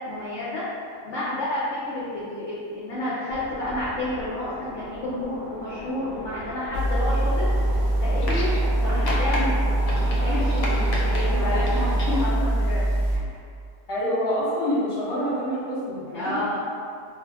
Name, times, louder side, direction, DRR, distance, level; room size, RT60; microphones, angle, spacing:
voice 1, 0.1-0.6 1.0-7.5 8.0-8.5 8.8-9.9 10.2-13.3 16.1-16.6, left 1 dB, 65° left, -8 dB, 0.7 m, -30 dB
sound 1, 3.3-12.3, right 1 dB, 70° right, 0.7 m, -36 dB
sound 2, 6.7-13.2, right 1 dB, 20° right, 1.0 m, -23 dB
sound 3, 8.2-8.8 9.1-9.4 9.9-11.2 11.7-12.3 13.3-13.4, left 1 dB, 90° left, 1.2 m, -32 dB
voice 2, 13.9-16.4, equal, 20° left, -10 dB, 0.8 m, -26 dB
2.5 x 2.2 x 3.5 m, 2.3 s
omnidirectional pair, 1.7 m